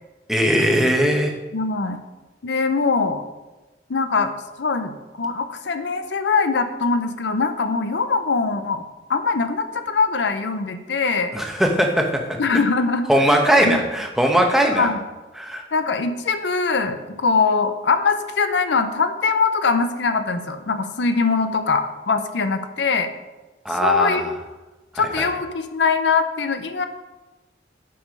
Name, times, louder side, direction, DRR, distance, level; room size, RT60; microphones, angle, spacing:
voice 1, 0.3-1.3 11.3-12.1 13.1-14.9 15.4-15.6 23.6-24.2 25.2-25.3, equal, ahead, 2 dB, 0.8 m, -19 dB
voice 2, 1.5-2.0 2.4-3.2 3.9-4.3 4.6-8.8 9.1-11.3 12.4-13.1 13.6-13.8 14.7-15.0 15.7-23.1 23.7-24.4 24.9-26.9, left 4 dB, 70° left, 9 dB, 0.6 m, -22 dB
7.8 x 5.4 x 5.3 m, 1.1 s
head